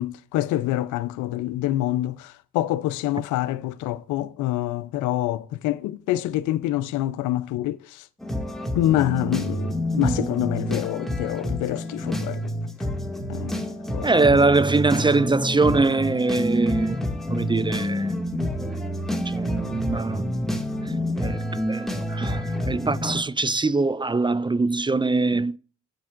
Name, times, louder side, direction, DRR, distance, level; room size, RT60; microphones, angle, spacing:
voice 1, 0.0-8.0 8.7-12.4 13.3-14.2, left 14 dB, 90° left, 0.6 m, -26 dB
sound 1, 8.2-23.2, equal, ahead, 2.0 m, -28 dB
voice 2, 9.9-10.3 14.0-18.1 18.6-18.8 19.3-20.2 20.8-25.6, right 3 dB, 15° right, 0.4 m, -23 dB
12.5 x 8.6 x 2.5 m
supercardioid pair, 60°, 29 cm